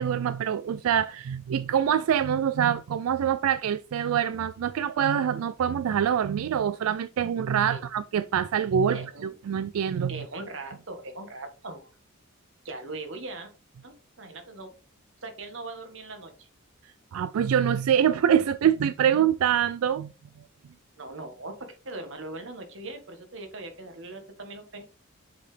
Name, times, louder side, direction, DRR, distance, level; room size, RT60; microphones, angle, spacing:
voice 1, 0.0-10.2 17.1-20.1, right 8 dB, 85° right, 0.3 m, -25 dB
voice 2, 8.9-9.3 10.1-11.9 12.6-13.5 13.8-14.7 15.2-16.5 21.0-24.9, right 2 dB, 60° right, 1.4 m, -40 dB
7.1 x 4.8 x 3.3 m
head